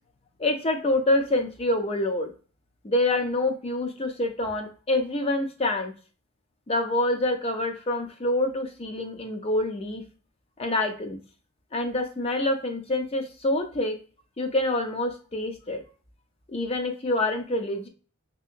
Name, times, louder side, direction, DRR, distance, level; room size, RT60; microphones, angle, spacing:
voice 1, 0.4-2.3 2.8-5.9 6.7-10.0 10.6-11.2 11.7-14.0 14.4-15.8 16.5-17.9, left 2 dB, 30° left, 5 dB, 0.5 m, -26 dB
3.0 x 2.8 x 2.5 m, 0.37 s
head